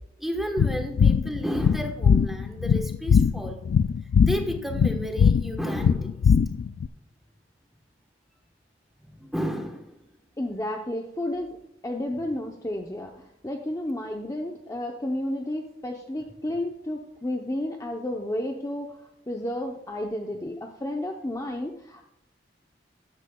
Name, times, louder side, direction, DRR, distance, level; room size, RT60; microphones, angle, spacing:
voice 1, 0.2-3.7 4.2-6.3 6.9-7.0 9.0-10.0, equal, ahead, 4 dB, 1.1 m, -32 dB
sound 1, 0.6-6.9, left 6 dB, 70° left, 0.3 m, -21 dB
voice 2, 10.4-11.6 11.8-22.1, left 1 dB, 20° left, 2 dB, 0.7 m, -32 dB
13.0 x 10.0 x 2.3 m, 0.80 s
head